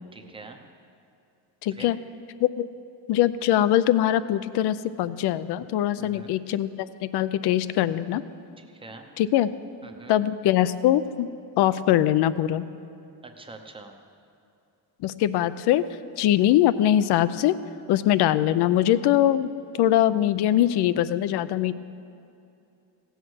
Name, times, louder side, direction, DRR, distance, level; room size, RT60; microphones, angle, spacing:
voice 1, 0.1-0.6 1.7-1.9 6.0-6.3 8.6-9.1 9.8-10.1 13.2-14.0, right 3 dB, 10° right, 4 dB, 0.7 m, -44 dB
voice 2, 1.6-2.0 2.4-2.7 3.1-8.2 9.2-9.5 10.1-11.3 11.6-12.7 15.0-15.8 16.2-17.6 17.9-19.5 19.8-21.7, left 12 dB, 65° left, 15 dB, 0.6 m, -22 dB
16.5 x 8.0 x 6.2 m, 2.6 s
cardioid pair, 175°, 43 cm